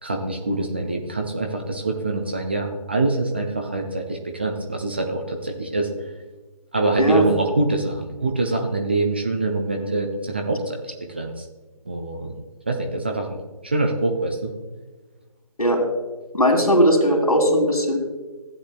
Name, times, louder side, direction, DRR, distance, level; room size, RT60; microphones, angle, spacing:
voice 1, 0.0-5.9 6.7-11.4 11.9-12.4 12.7-14.5, right 2 dB, 15° right, 2 dB, 0.4 m, -25 dB
voice 2, 16.3-18.0, equal, 75° left, 2 dB, 2.5 m, -18 dB
15.0 x 8.5 x 2.3 m, 1.2 s
figure-of-eight pair, 150°, 19 cm